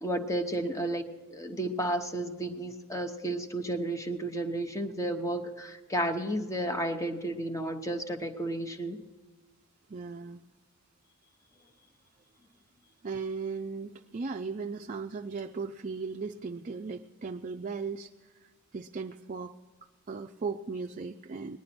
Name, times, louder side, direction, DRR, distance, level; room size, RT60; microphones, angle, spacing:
voice 1, 0.0-9.0, right 1 dB, 15° left, 7 dB, 0.9 m, -32 dB
voice 2, 9.9-10.4 13.0-18.1 18.7-19.5 20.1-21.6, right 4 dB, 35° right, 4 dB, 0.4 m, -37 dB
19.0 x 11.5 x 4.3 m, 1.4 s
head